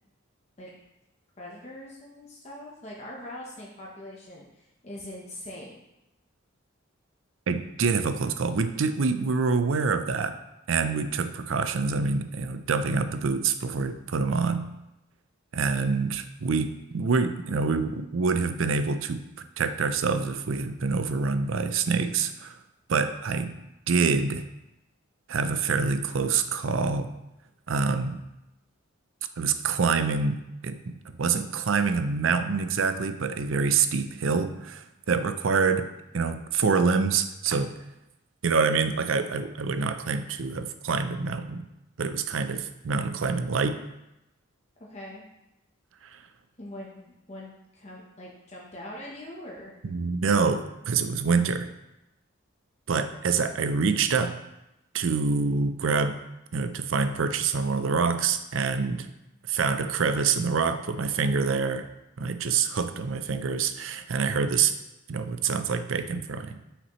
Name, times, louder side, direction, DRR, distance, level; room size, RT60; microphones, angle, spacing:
voice 1, 1.4-5.8 44.9-45.3 46.6-49.8, left 1 dB, 30° left, -4 dB, 0.9 m, -42 dB
voice 2, 7.5-10.4 10.7-14.7 15.5-22.6 22.9-23.6 23.9-24.4 25.3-27.1 27.7-28.2 29.4-30.4 30.6-35.9 36.1-37.7 38.4-41.7 42.0-43.8 46.1-46.2 49.8-51.7 52.9-54.4 54.9-56.2 56.5-59.1 59.5-61.9 62.2-64.7 65.1-66.6, right 5 dB, 70° right, 10 dB, 0.5 m, -26 dB
8.0 x 6.0 x 3.1 m, 0.91 s
head